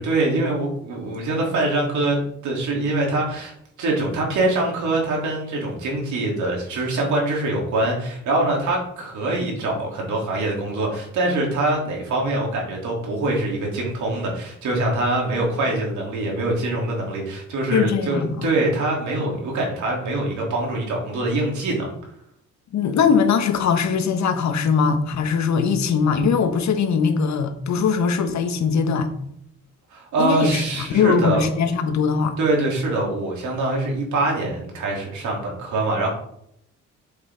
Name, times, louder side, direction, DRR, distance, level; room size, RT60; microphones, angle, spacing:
voice 1, 0.0-21.9 29.9-31.5 32.4-36.1, right 2 dB, 75° right, 3.6 m, -24 dB
voice 2, 17.7-18.5 22.7-29.1 30.2-32.3, left 6 dB, 65° left, 1.4 m, -21 dB
8.0 x 7.9 x 3.9 m
cardioid pair, 90°, 30 cm